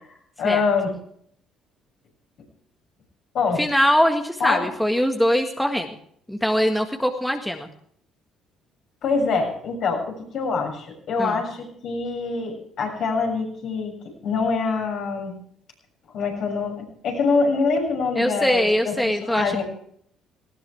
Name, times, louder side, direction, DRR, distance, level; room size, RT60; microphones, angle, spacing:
voice 1, 0.4-0.9 3.3-3.6 4.4-4.7 9.0-13.9 14.2-15.3 16.1-18.9 19.2-19.6, left 4 dB, 65° left, 1 dB, 6.9 m, -24 dB
voice 2, 3.6-5.9 6.3-7.7 11.2-11.4 18.1-19.6, equal, 5° left, 4 dB, 1.7 m, -22 dB
19.0 x 17.0 x 3.5 m, 0.65 s
hypercardioid pair, 60°, 0 cm